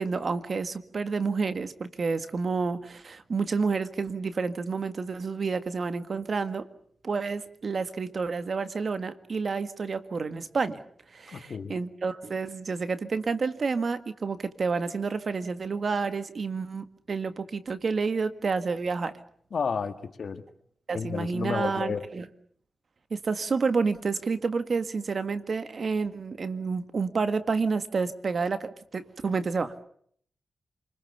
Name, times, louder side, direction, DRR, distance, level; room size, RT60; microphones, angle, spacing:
voice 1, 0.0-6.7 7.0-10.8 11.1-19.1 20.9-22.3 23.1-29.7, right 4 dB, 60° right, 11 dB, 1.7 m, -29 dB
voice 2, 11.3-11.7 19.5-20.4 20.9-22.1, left 5 dB, 65° left, 9 dB, 1.9 m, -31 dB
28.5 x 21.0 x 7.0 m, 0.63 s
cardioid pair, 55°, 0 cm